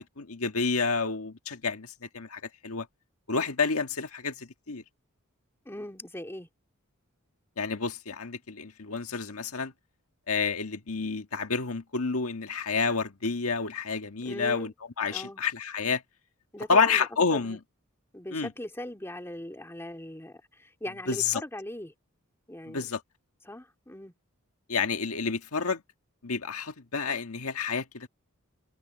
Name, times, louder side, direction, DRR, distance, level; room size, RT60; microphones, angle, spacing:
voice 1, 0.0-2.9 3.3-4.8 7.6-9.7 10.3-16.0 16.7-17.6 18.3-18.5 21.1-21.4 22.7-23.0 24.7-25.8 26.2-28.1, left 5 dB, 80° left, 1.7 m, -29 dB
voice 2, 5.7-6.5 14.2-14.7 15.1-15.4 16.5-17.6 18.1-21.9 22.5-22.8 23.4-24.1, left 1 dB, 10° left, 2.3 m, -40 dB
head